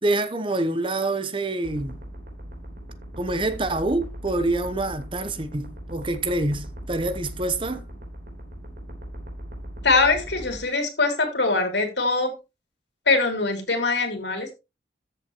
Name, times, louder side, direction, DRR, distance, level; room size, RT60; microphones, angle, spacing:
voice 1, 0.0-2.0 3.2-7.8, right 2 dB, 30° right, 1.0 m, -26 dB
sound 1, 1.6-10.6, right 1 dB, 55° right, 3.8 m, -39 dB
voice 2, 9.8-12.3 13.1-14.5, left 3 dB, 80° left, 3.2 m, -22 dB
13.5 x 7.3 x 3.1 m
head